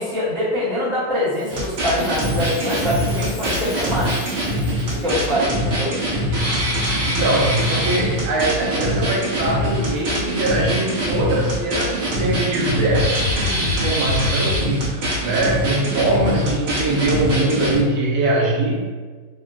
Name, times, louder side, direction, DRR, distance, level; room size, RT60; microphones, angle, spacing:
voice 1, 0.0-4.2 4.9-6.0, left 1 dB, 40° right, -13 dB, 1.2 m, -24 dB
Chime, 1.3-5.4 6.0-6.1 6.8-7.0 7.5-7.7 8.4-8.5 9.1-9.2 10.0-10.1, left 3 dB, 80° left, 1.5 m, -41 dB
sound 1, 1.5-17.8, equal, 60° right, 1.3 m, -23 dB
voice 2, 7.0-18.8, right 2 dB, 75° right, -3 dB, 1.4 m, -22 dB
3.8 x 2.0 x 2.3 m, 1.4 s
omnidirectional pair, 2.4 m